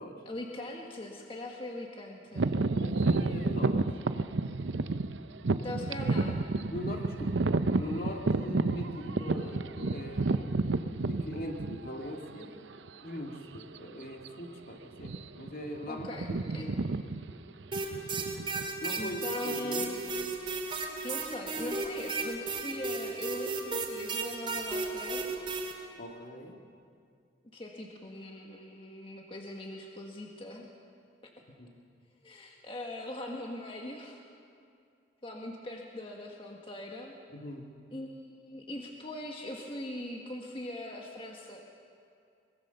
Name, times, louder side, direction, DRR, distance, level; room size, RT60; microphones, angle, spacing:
voice 1, 0.2-2.5 5.6-6.4 15.0-15.1 15.9-16.7 19.0-20.0 20.7-25.5 27.5-30.7 31.2-31.3 32.2-34.2 35.2-37.1 37.9-41.6, left 1 dB, 30° left, 0 dB, 1.6 m, -41 dB
sound 1, 2.3-12.1 12.8-12.9 13.5-13.8 14.0-14.3 14.9-15.5 15.7-19.2, right 3 dB, 90° right, 0.7 m, -30 dB
voice 2, 2.6-3.8 6.1-6.3 6.7-7.4 7.7-10.5 11.1-12.5 13.0-16.7 18.8-19.9 26.0-26.6 31.6-31.7 37.3-37.7, equal, 50° left, 2 dB, 2.2 m, -41 dB
sound 2, 17.7-25.7, right 3 dB, 30° right, 2.9 m, -34 dB
24.0 x 21.5 x 6.9 m, 2.4 s
head